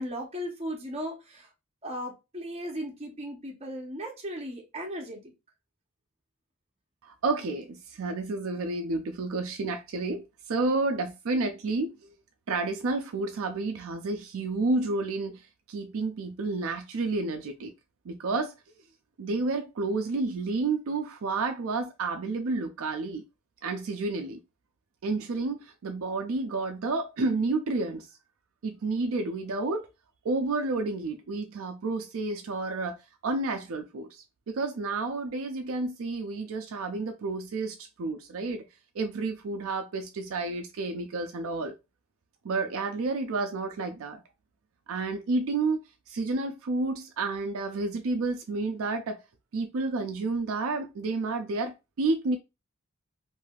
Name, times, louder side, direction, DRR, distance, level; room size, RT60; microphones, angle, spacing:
voice 1, 0.0-1.5 1.8-5.2 10.6-10.8, equal, 30° right, 0.7 m, -36 dB
voice 2, 7.0-12.1 12.5-17.7 18.1-18.5 19.2-23.2 23.6-24.4 25.0-28.1 28.6-29.9 30.2-33.0 33.2-38.6 38.9-41.8 42.4-44.2 44.9-45.8 46.1-49.2 49.5-52.4, right 3 dB, 70° right, 0.4 m, -30 dB
3.3 x 2.6 x 2.3 m
head